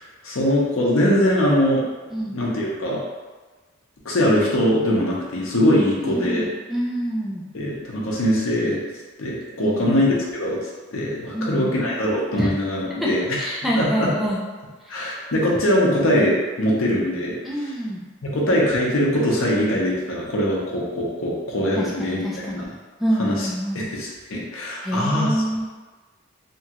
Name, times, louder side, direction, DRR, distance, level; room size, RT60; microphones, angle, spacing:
voice 1, 0.2-1.8 2.2-3.0 4.0-6.5 7.5-8.8 9.2-13.5 13.8-14.1 14.9-17.7 18.2-22.2 22.6-22.7 23.2-23.5 23.7-25.4, equal, 75° left, -3 dB, 0.7 m, -22 dB
voice 2, 6.0-7.4 9.6-9.9 11.3-11.7 12.4-12.5 13.0-13.1 13.4-14.4 17.4-18.0 21.8-22.7 23.0-23.8 24.8-25.7, right 1 dB, ahead, -5 dB, 0.4 m, -26 dB
2.9 x 2.3 x 2.9 m, 1.3 s
head